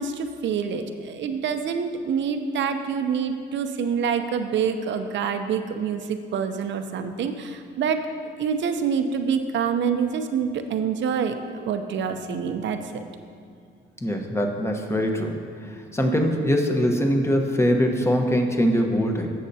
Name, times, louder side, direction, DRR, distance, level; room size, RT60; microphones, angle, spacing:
voice 1, 0.0-8.0 8.4-13.0, right 6 dB, 65° right, 7 dB, 0.7 m, -26 dB
voice 2, 14.0-15.4 15.9-19.3, equal, 15° left, 3 dB, 1.1 m, -22 dB
15.5 x 6.5 x 2.8 m, 2.2 s
cardioid pair, 90°, 20 cm